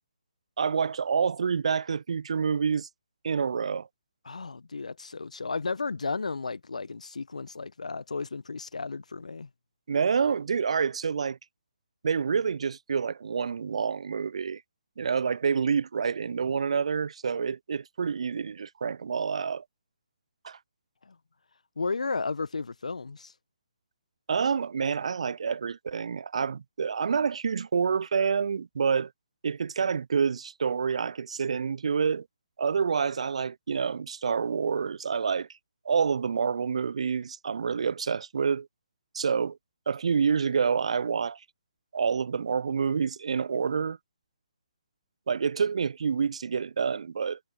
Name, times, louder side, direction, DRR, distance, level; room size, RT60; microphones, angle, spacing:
voice 1, 0.6-2.9 3.2-3.9 9.9-11.4 12.0-14.6 15.0-19.6 20.4-20.6 24.3-29.1 29.4-32.3 32.6-35.5 35.9-38.7 39.1-39.6 39.9-41.4 41.9-44.0 45.3-47.4, right 6 dB, 55° right, 0.4 m, -28 dB
voice 2, 4.2-9.5 21.0-21.2 21.8-23.3, left 4 dB, 70° left, 0.8 m, -33 dB
figure-of-eight pair, 140°, 4 cm